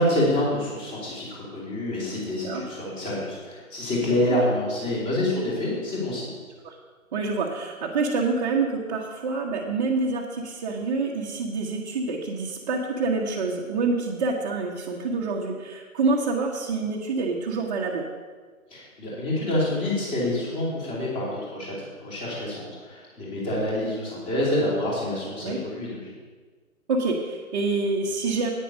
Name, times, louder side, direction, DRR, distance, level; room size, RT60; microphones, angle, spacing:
voice 1, 0.0-6.3 18.7-26.1, left 1 dB, 15° left, -5 dB, 3.0 m, -27 dB
voice 2, 7.1-18.0 23.8-23.9 25.4-25.6 26.9-28.5, right 3 dB, 30° right, -3 dB, 1.1 m, -27 dB
10.0 x 9.3 x 5.4 m, 1.5 s
figure-of-eight pair, 140°, 43 cm